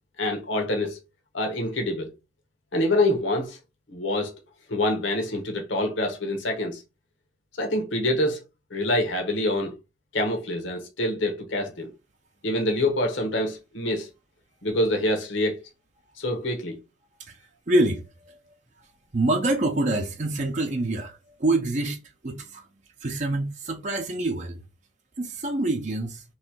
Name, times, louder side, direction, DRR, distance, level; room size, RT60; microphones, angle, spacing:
voice 1, 0.2-1.0 1.3-2.1 2.7-3.6 3.9-4.3 4.7-6.8 7.5-8.4 8.7-9.7 10.1-11.9 12.4-14.1 14.6-15.6 16.2-16.8, left 1 dB, 70° left, 1.1 m, -26 dB
voice 2, 17.7-18.0 18.3-18.4 19.1-22.6 23.0-24.6 25.2-26.2, right 2 dB, 40° right, 0.7 m, -26 dB
3.3 x 3.1 x 4.5 m
head